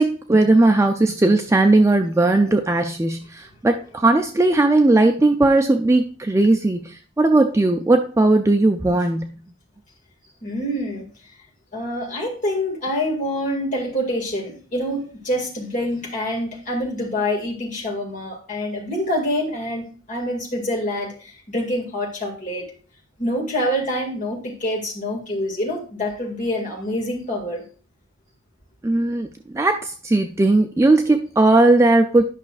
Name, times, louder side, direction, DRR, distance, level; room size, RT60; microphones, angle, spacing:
voice 1, 0.0-9.4 28.8-29.3 29.5-32.2, right 2 dB, 15° right, 5 dB, 0.3 m, -17 dB
voice 2, 10.4-11.1 11.7-22.7 23.2-27.6, left 1 dB, 40° left, -2 dB, 2.0 m, -26 dB
10.5 x 5.8 x 2.4 m, 0.37 s
head